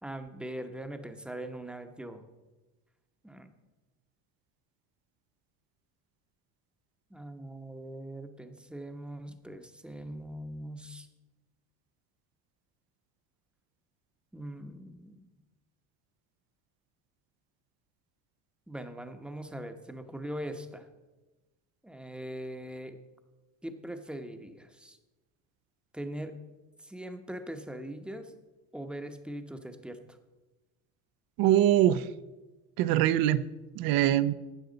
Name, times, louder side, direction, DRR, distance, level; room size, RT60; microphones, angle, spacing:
voice 1, 0.0-2.2 3.2-3.5 7.1-11.1 14.3-15.3 18.7-20.9 21.8-23.0 23.6-25.0 25.9-26.3 26.8-28.3 28.7-30.2, right 1 dB, 5° right, 7 dB, 0.8 m, -41 dB
voice 2, 31.4-32.0 32.8-33.4 33.8-34.3, right 12 dB, 65° right, 16 dB, 0.7 m, -23 dB
13.0 x 9.3 x 4.0 m, 1.1 s
cardioid pair, 125°, 37 cm